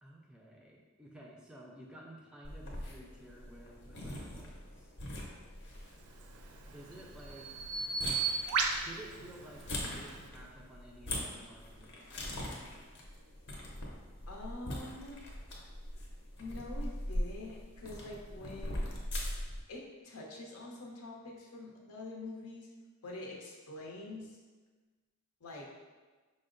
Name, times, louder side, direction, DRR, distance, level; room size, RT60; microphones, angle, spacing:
voice 1, 0.0-4.9 6.7-7.6 8.8-13.0, right 1 dB, 5° right, -2 dB, 0.4 m, -53 dB
sound 1, 2.4-19.6, left 1 dB, 55° left, 0.8 m, -42 dB
Bird vocalization bird call bird song, 6.1-10.3, right 4 dB, 85° right, 0.4 m, -36 dB
voice 2, 14.3-15.2 16.4-18.9 19.7-22.7 23.0-24.4 25.4-25.7, left 2 dB, 85° left, -2 dB, 0.8 m, -45 dB
5.4 x 2.1 x 3.8 m, 1.3 s
head